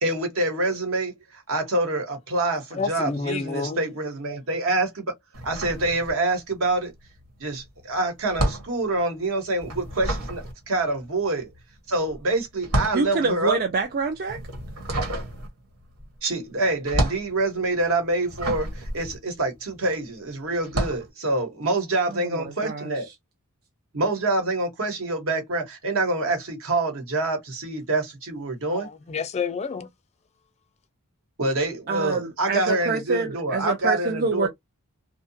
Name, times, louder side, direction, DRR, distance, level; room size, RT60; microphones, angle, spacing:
voice 1, 0.0-5.1 5.4-6.9 7.4-11.5 11.9-13.6 16.2-23.1 23.9-28.9 31.4-34.5, right 2 dB, 65° right, 1.1 m, -26 dB
voice 2, 2.7-3.9 28.7-29.9, left 5 dB, 30° left, 0.3 m, -29 dB
sound 1, 5.3-6.6 6.8-20.0 20.6-21.1, right 1 dB, 90° right, 1.4 m, -30 dB
voice 3, 12.9-14.4 22.1-22.9 31.9-34.5, right 4 dB, 40° right, 0.4 m, -26 dB
2.7 x 2.2 x 2.7 m
head